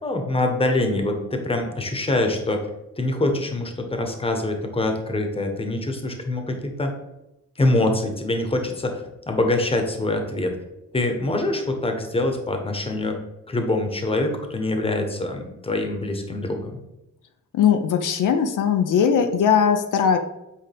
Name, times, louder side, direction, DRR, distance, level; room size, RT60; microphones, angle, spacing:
voice 1, 0.0-2.7 3.0-6.9 7.6-10.5 10.9-13.2 13.5-16.8, left 2 dB, 20° left, 4 dB, 1.1 m, -24 dB
voice 2, 17.5-20.2, left 7 dB, 75° left, 6 dB, 0.7 m, -19 dB
8.4 x 4.9 x 3.4 m, 0.92 s
wide cardioid pair, 135°, 31 cm